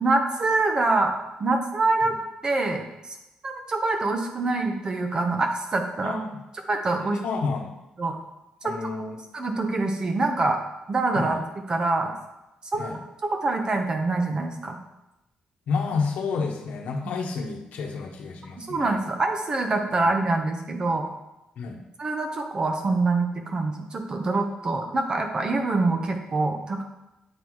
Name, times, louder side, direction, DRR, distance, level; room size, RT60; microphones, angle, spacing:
voice 1, 0.0-1.1 1.4-3.2 3.4-6.2 6.7-7.2 8.0-8.2 8.6-8.9 9.3-10.6 10.9-11.4 11.7-12.1 12.7-14.8 18.6-21.1 22.0-26.8, right 3 dB, 30° right, 5 dB, 0.9 m, -25 dB
voice 2, 7.0-7.7 8.6-9.2 11.1-11.4 12.8-13.0 15.7-19.0 20.0-20.1 21.6-21.8, left 4 dB, 75° left, 2 dB, 1.0 m, -30 dB
8.8 x 3.9 x 4.7 m, 0.95 s
cardioid pair, 140°, 2 cm